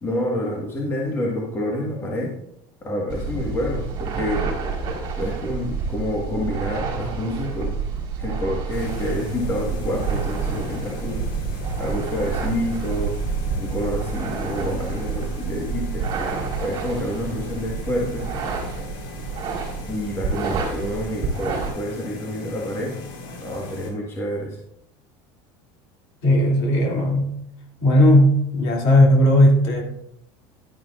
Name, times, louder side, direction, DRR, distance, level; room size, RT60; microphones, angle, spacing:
voice 1, 0.0-2.3 2.8-4.4 5.2-7.8 8.2-11.2 11.8-13.1 13.6-16.1 16.6-18.3 19.9-22.9 23.4-24.6, left 1 dB, 20° left, -2 dB, 1.5 m, -28 dB
sound 1, 3.1-21.7, right 5 dB, 35° right, 3.8 m, -29 dB
sound 2, 8.7-23.9, left 3 dB, 70° left, 2.5 m, -37 dB
voice 2, 26.2-27.3 27.8-29.8, left 1 dB, 55° left, 0 dB, 2.6 m, -16 dB
11.5 x 10.5 x 2.5 m, 0.78 s
cardioid pair, 165°, 12 cm